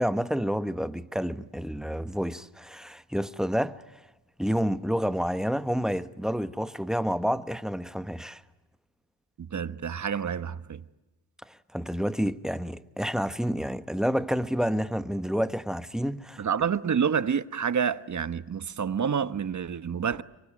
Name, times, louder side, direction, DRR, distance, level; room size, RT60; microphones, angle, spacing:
voice 1, 0.0-3.8 4.4-8.4 11.5-16.4, equal, ahead, 1.1 m, -29 dB
voice 2, 9.4-10.8 16.4-20.2, right 7 dB, 45° right, 1.1 m, -28 dB
25.0 x 24.0 x 8.7 m
cardioid pair, 60°, 42 cm